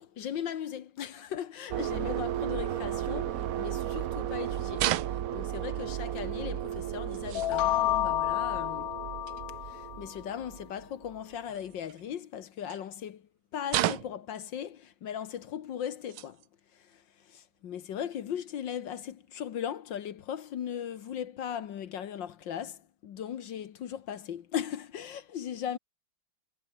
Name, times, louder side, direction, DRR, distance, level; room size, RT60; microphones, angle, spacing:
voice 1, 0.0-8.9 9.6-16.4 16.7-25.8, left 9 dB, 65° left, 1.7 m, -38 dB
sound 1, 1.7-11.2, right 11 dB, 60° right, 1.0 m, -35 dB
sound 2, 4.7-5.6 6.7-6.8 7.1-7.6 9.3-9.4 11.4-12.1 12.7-12.8 13.7-14.3 15.3-15.4 15.9-16.5 16.9-17.0 18.1-18.2 19.3-19.4 20.8-21.1, right 15 dB, 80° right, 1.5 m, -33 dB
sound 3, 7.3-10.1, left 14 dB, 80° left, 0.8 m, -30 dB
omnidirectional pair, 2.2 m